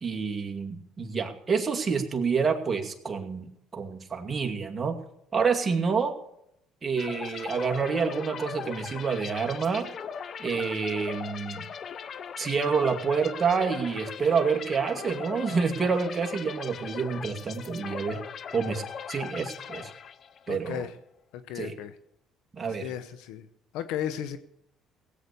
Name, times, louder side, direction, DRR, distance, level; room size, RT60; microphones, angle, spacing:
voice 1, 0.0-3.5 3.7-5.0 5.3-6.1 6.8-9.9 10.4-11.7 12.4-18.2 18.5-18.8 19.1-19.9 20.5-20.8 21.6-21.7 22.5-22.9, right 5 dB, 30° right, 3 dB, 2.3 m, -28 dB
sound 1, 7.0-20.5, left 7 dB, 50° left, 0.7 m, -39 dB
voice 2, 20.5-21.0 21.3-22.0 22.8-23.5 23.7-24.4, left 10 dB, 80° left, 12 dB, 0.8 m, -34 dB
17.5 x 8.5 x 6.8 m, 0.77 s
supercardioid pair, 75°, 0 cm